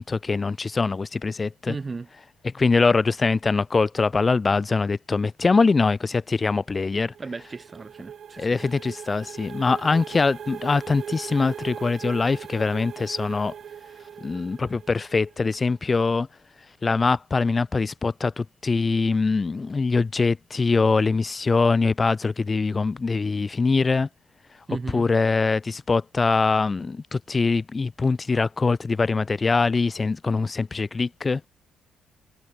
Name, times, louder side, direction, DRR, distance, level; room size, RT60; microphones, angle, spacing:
voice 1, 0.0-1.8 2.4-7.1 8.4-13.5 14.2-16.3 16.8-24.1 24.9-31.4, left 4 dB, 30° left, 5.3 m, -23 dB
voice 2, 1.7-2.1 7.2-8.7 24.7-25.1, right 4 dB, 30° right, 4.3 m, -35 dB
sound 1, 6.9-15.5, right 8 dB, 60° right, 7.4 m, -40 dB
cardioid pair, 90°, 0 cm